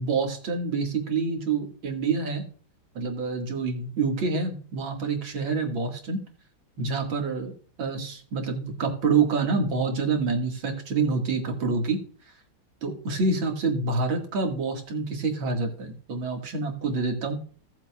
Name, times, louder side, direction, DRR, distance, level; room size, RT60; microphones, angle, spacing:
voice 1, 0.0-2.4 2.9-6.2 6.8-7.5 7.8-12.0 12.8-17.4, right 4 dB, 65° right, 2 dB, 2.6 m, -27 dB
17.0 x 7.4 x 2.3 m, 0.41 s
omnidirectional pair, 2.4 m